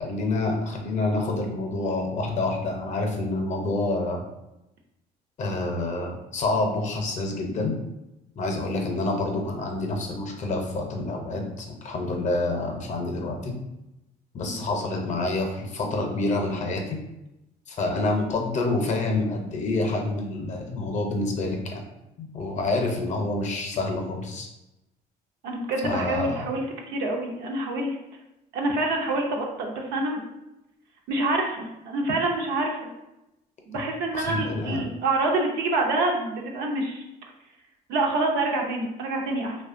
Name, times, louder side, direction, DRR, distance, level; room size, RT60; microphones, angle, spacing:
voice 1, 0.0-4.2 5.4-7.7 8.4-13.5 14.3-17.0 17.7-21.8 22.2-24.5 25.8-26.4 34.1-34.8, left 2 dB, 45° left, 2 dB, 0.6 m, -27 dB
voice 2, 25.4-28.0 28.5-30.2 31.1-32.8 33.7-37.0 37.9-39.6, right 2 dB, 90° right, 1 dB, 0.5 m, -26 dB
2.7 x 2.2 x 2.5 m, 0.93 s
cardioid pair, 110°, 17 cm